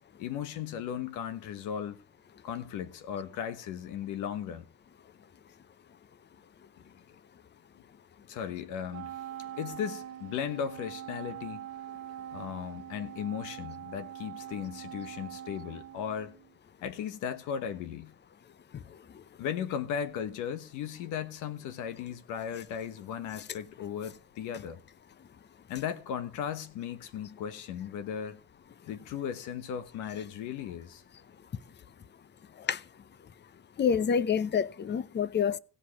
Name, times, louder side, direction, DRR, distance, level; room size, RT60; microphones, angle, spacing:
voice 1, 0.2-2.0 2.4-4.7 6.8-6.9 7.7-7.8 8.3-9.1 9.6-11.7 12.3-16.3 16.8-18.1 19.4-24.8 25.7-28.4 28.9-31.0, left 8 dB, 85° left, 1.4 m, -36 dB
Wind instrument woodwind instrument, 8.9-16.5, right 11 dB, 60° right, 0.8 m, -43 dB
voice 2, 33.8-35.6, left 7 dB, 35° left, 0.7 m, -27 dB
16.5 x 5.6 x 8.3 m
cardioid pair, 85°, 29 cm